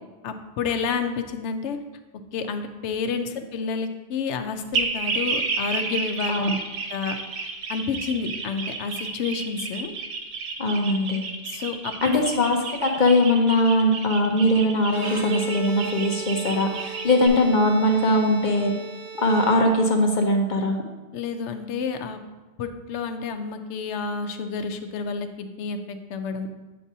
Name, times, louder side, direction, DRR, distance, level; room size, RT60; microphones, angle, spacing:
voice 1, 0.2-1.8 2.3-6.6 6.9-7.2 7.7-9.9 11.5-12.3 21.1-22.2 22.6-26.5, left 5 dB, 75° left, 7 dB, 0.9 m, -29 dB
sound 1, 4.7-17.3, right 4 dB, 85° right, 1.1 m, -31 dB
voice 2, 10.6-11.3 12.0-18.7 19.2-20.8, left 1 dB, 45° left, 3 dB, 0.7 m, -21 dB
Bowed string instrument, 14.8-20.1, right 4 dB, 40° right, 1.1 m, -36 dB
8.6 x 6.6 x 2.7 m, 1.1 s
omnidirectional pair, 1.2 m